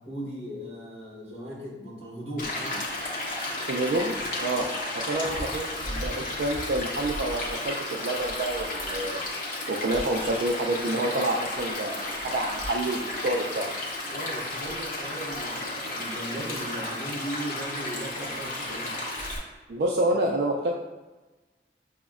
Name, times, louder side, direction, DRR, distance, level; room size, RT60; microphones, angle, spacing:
voice 1, 0.0-2.8 14.1-18.9, right 1 dB, 35° right, -5 dB, 1.1 m, -37 dB
Stream, 2.4-19.4, left 1 dB, 50° left, 0.7 m, -33 dB
voice 2, 3.6-4.1 4.4-4.7 4.9-9.2 9.7-13.7 19.7-20.7, right 2 dB, 65° right, -2 dB, 0.3 m, -28 dB
5.9 x 2.1 x 2.3 m, 1.2 s
head